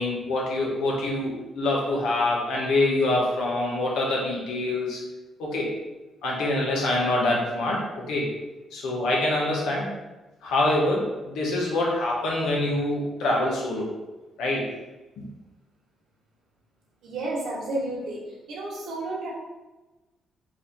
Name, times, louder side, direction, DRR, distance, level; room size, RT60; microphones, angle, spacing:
voice 1, 0.0-5.0 5.4-5.7 6.2-8.3 8.7-9.9 10.4-13.9 14.4-14.7, left 2 dB, 85° left, -2 dB, 1.0 m, -25 dB
voice 2, 17.0-18.2 18.5-19.3, right 2 dB, 75° right, -3 dB, 1.2 m, -31 dB
3.1 x 2.7 x 4.0 m, 1.1 s
cardioid pair, 90°, 0 cm